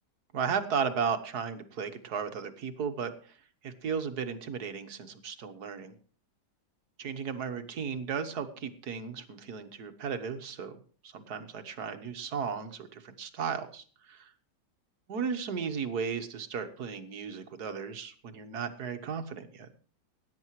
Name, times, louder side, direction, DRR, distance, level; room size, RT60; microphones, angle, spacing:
voice 1, 0.3-3.1 3.6-6.0 7.0-10.8 11.1-14.2 15.1-19.7, right 6 dB, 65° right, 9 dB, 1.8 m, -35 dB
19.5 x 10.0 x 3.1 m, 0.42 s
omnidirectional pair, 1.9 m